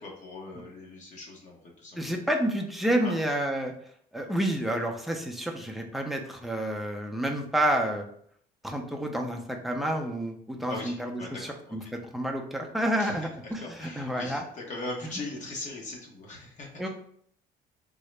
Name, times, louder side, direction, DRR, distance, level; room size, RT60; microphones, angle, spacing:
voice 1, 0.0-2.2 3.0-3.2 10.7-11.9 13.0-16.9, left 2 dB, 45° left, -1 dB, 0.9 m, -40 dB
voice 2, 2.0-3.7 4.1-8.1 8.6-14.4 16.8-16.9, right 1 dB, ahead, 3 dB, 0.5 m, -29 dB
3.6 x 2.0 x 3.2 m, 0.64 s
cardioid pair, 110°, 17 cm